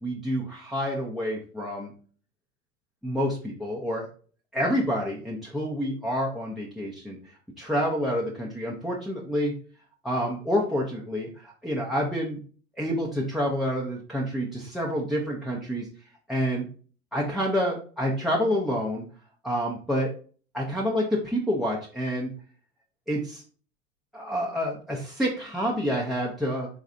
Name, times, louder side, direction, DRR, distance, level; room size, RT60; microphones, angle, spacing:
voice 1, 0.0-1.9 3.0-4.1 4.5-9.5 10.0-12.4 12.8-15.9 16.3-16.7 17.1-19.0 19.4-20.1 20.5-22.3 23.1-23.4 24.1-26.7, equal, ahead, -2 dB, 0.3 m, -28 dB
3.9 x 3.2 x 2.4 m, 0.41 s
hypercardioid pair, 100°, 41 cm